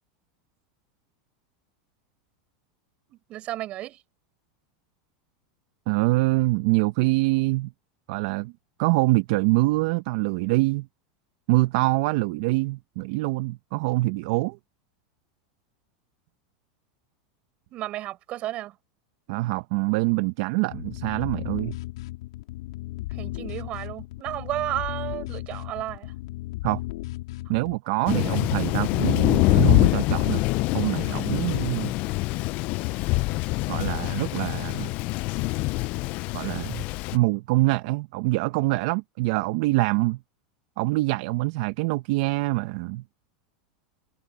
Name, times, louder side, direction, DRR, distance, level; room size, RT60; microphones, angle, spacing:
voice 1, 3.1-4.0 17.7-18.8 23.1-26.1 28.2-28.3, right 15 dB, 45° right, 8.0 m, -33 dB
voice 2, 5.9-7.7 8.1-8.5 8.8-10.9 11.5-14.6 19.3-21.8 26.6-26.8 27.5-30.4 30.7-31.9 33.7-34.9 36.3-36.8 37.1-40.2 40.8-43.0, right 21 dB, 65° right, 1.5 m, -25 dB
sound 1, 20.7-27.7, left 18 dB, 75° left, 4.7 m, -35 dB
Thunder, 28.1-37.2, left 23 dB, 50° left, 0.6 m, -24 dB
hypercardioid pair, 110°, 3 cm